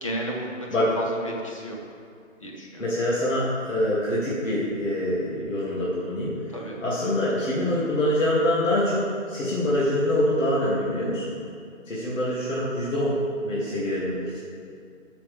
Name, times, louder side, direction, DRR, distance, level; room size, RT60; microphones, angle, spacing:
voice 1, 0.0-0.7 0.9-1.8 2.4-2.8 6.5-6.8, right 1 dB, 25° left, -1 dB, 1.0 m, -33 dB
voice 2, 2.8-6.3 6.8-11.3 11.9-13.2 13.4-14.4, left 1 dB, 75° left, -8 dB, 2.7 m, -25 dB
13.0 x 7.0 x 3.5 m, 2.2 s
hypercardioid pair, 175°, 38 cm